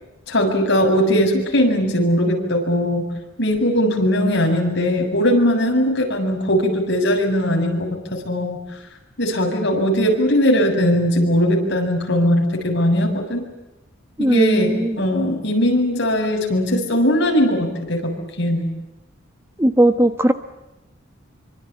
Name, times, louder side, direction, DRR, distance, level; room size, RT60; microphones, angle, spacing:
voice 1, 0.3-3.0 3.4-8.6 9.2-13.4 14.2-18.1 18.4-18.7, equal, 55° left, 2 dB, 7.6 m, -19 dB
voice 2, 14.2-15.0 19.6-20.3, right 1 dB, 15° right, 9 dB, 1.1 m, -17 dB
27.0 x 25.0 x 8.8 m, 0.94 s
head